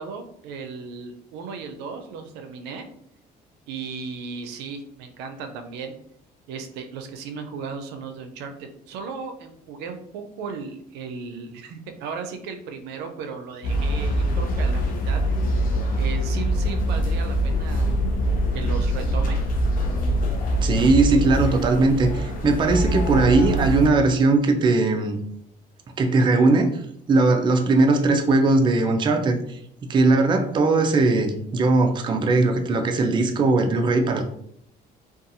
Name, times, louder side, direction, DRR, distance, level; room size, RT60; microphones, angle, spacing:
voice 1, 0.0-2.8 3.7-5.9 6.5-15.2 15.9-18.0 18.5-19.4, right 5 dB, 90° right, 6 dB, 0.4 m, -36 dB
sound 1, 13.6-23.9, equal, 55° left, 0.5 m, -23 dB
voice 2, 20.6-25.2 26.0-26.8 27.1-29.6 29.9-34.2, right 3 dB, 30° right, 5 dB, 0.4 m, -19 dB
2.7 x 2.3 x 2.6 m, 0.69 s
cardioid pair, 110°, 17 cm